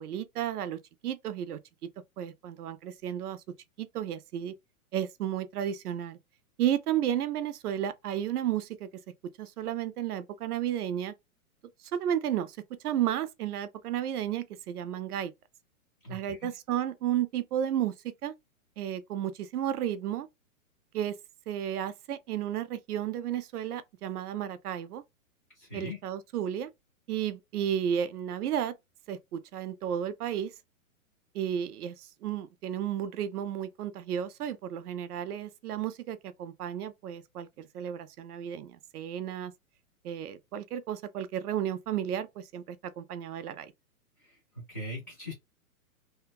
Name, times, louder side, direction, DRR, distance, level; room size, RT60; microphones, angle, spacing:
voice 1, 0.0-3.4 3.8-4.5 4.9-6.2 6.6-8.9 9.4-11.1 11.9-12.6 12.8-15.3 16.1-18.3 18.8-20.3 20.9-21.2 21.5-25.0 25.7-26.7 27.1-28.7 29.1-30.5 31.3-39.5 40.0-43.7, right 10 dB, 90° right, 0.6 m, -33 dB
voice 2, 16.0-16.5 25.6-26.0 44.2-45.3, left 1 dB, 15° left, 0.4 m, -41 dB
2.8 x 2.3 x 2.2 m
hypercardioid pair, 170°, 44 cm